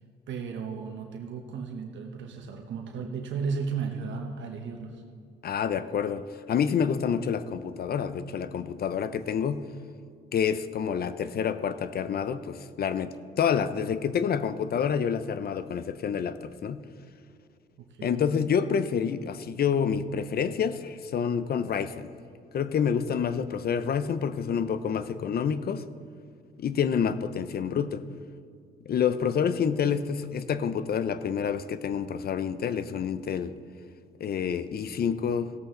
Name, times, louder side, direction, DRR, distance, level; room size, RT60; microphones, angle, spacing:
voice 1, 0.3-5.0 17.8-18.2, right 5 dB, 70° right, 3 dB, 1.1 m, -34 dB
voice 2, 5.4-9.6 10.3-16.8 18.0-22.1 22.5-25.9 26.6-28.0 28.9-33.5 34.2-35.5, left 7 dB, 50° left, 13 dB, 0.6 m, -28 dB
17.0 x 7.9 x 3.8 m, 2.3 s
cardioid pair, 90°, 20 cm